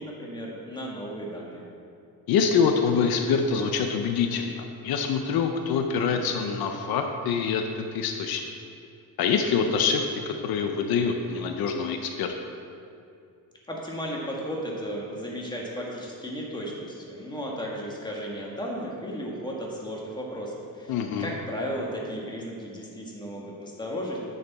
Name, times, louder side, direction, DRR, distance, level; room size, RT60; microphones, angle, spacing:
voice 1, 0.0-1.6 13.7-24.2, equal, 10° left, -2 dB, 1.7 m, -34 dB
voice 2, 2.3-8.4 9.2-12.3 20.9-21.3, left 6 dB, 75° left, 5 dB, 0.7 m, -25 dB
9.8 x 6.7 x 4.1 m, 2.5 s
cardioid pair, 120°, 37 cm